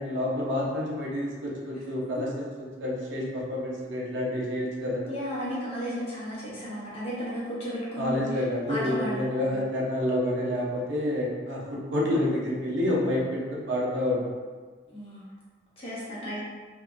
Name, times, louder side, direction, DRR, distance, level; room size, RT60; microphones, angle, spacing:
voice 1, 0.0-2.3 2.6-5.0 8.0-14.3, left 1 dB, 90° right, -4 dB, 0.7 m, -28 dB
voice 2, 5.1-8.2 8.7-9.4 14.9-15.2 15.8-16.4, equal, 35° left, -9 dB, 0.9 m, -34 dB
2.6 x 2.2 x 2.5 m, 1.5 s
head